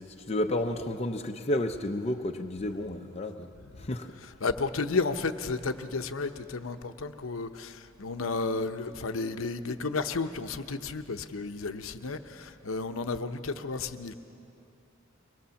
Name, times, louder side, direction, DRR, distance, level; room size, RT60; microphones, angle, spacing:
voice 1, 0.0-3.5 3.8-4.1, left 1 dB, 30° left, 3 dB, 0.7 m, -31 dB
voice 2, 4.4-14.1, left 3 dB, 80° left, 8 dB, 0.9 m, -32 dB
23.5 x 20.0 x 7.0 m, 2.7 s
head